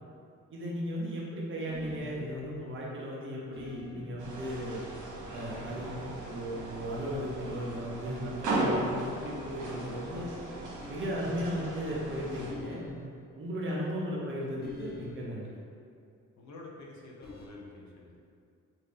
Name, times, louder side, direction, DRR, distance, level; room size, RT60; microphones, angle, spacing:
voice 1, 0.5-4.8 5.3-10.3 10.9-12.8 13.3-15.5, equal, 40° right, -4 dB, 0.8 m, -36 dB
sound 1, 1.7-2.8 3.5-4.3 5.3-6.2 7.4-7.7 8.0-8.3 10.8-11.5 12.5-13.1 14.6-15.3 17.2-17.5, left 1 dB, 30° left, 0.7 m, -44 dB
sound 2, 4.2-12.5, right 1 dB, 75° right, 1.0 m, -37 dB
voice 2, 16.4-18.1, left 2 dB, 65° left, -2 dB, 0.7 m, -48 dB
3.5 x 2.6 x 3.5 m, 2.4 s
cardioid pair, 90°, 30 cm